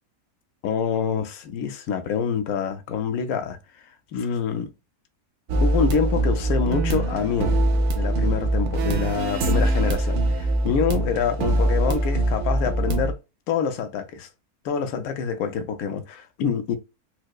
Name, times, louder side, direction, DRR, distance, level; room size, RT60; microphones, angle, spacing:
voice 1, 0.6-3.6 4.1-4.7 5.6-7.6 7.9-13.2 13.5-14.3 14.6-16.8, left 7 dB, 80° left, 1.0 m, -26 dB
sound 1, 5.5-13.1, right 1 dB, 65° right, 0.8 m, -23 dB
4.5 x 2.0 x 2.3 m
omnidirectional pair, 1.5 m